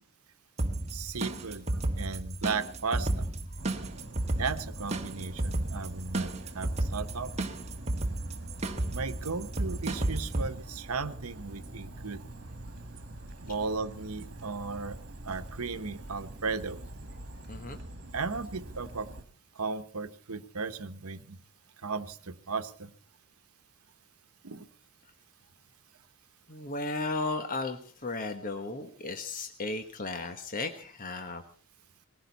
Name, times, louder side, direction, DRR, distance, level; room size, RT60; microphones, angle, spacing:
sound 1, 0.6-10.5, right 2 dB, 30° right, 1.4 m, -33 dB
voice 1, 0.9-1.7 2.0-3.3 4.4-7.3 8.9-12.2 13.4-15.0 15.2-16.8 18.1-19.1 19.6-21.4 21.8-22.9 24.4-24.7, right 4 dB, 80° right, 11 dB, 1.1 m, -35 dB
sound 2, 3.6-19.2, right 1 dB, 50° right, 2.1 m, -45 dB
voice 2, 17.5-17.8 26.5-31.4, left 3 dB, 40° left, 6 dB, 1.2 m, -35 dB
20.0 x 16.5 x 4.1 m, 0.40 s
head